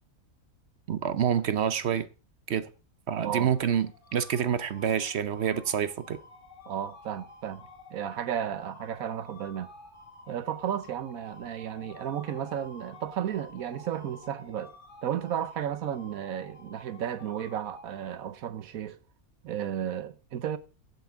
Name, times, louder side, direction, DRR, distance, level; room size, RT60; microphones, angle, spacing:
voice 1, 0.9-2.1 2.5-2.7 3.1-6.2, right 8 dB, 55° right, 0.8 m, -27 dB
voice 2, 3.2-3.5 6.7-9.7 10.3-14.7 15.0-19.0 19.4-20.6, right 10 dB, 75° right, 1.3 m, -33 dB
sound 1, 3.3-18.6, left 2 dB, 35° left, 2.9 m, -51 dB
15.0 x 8.1 x 3.5 m
omnidirectional pair, 1.5 m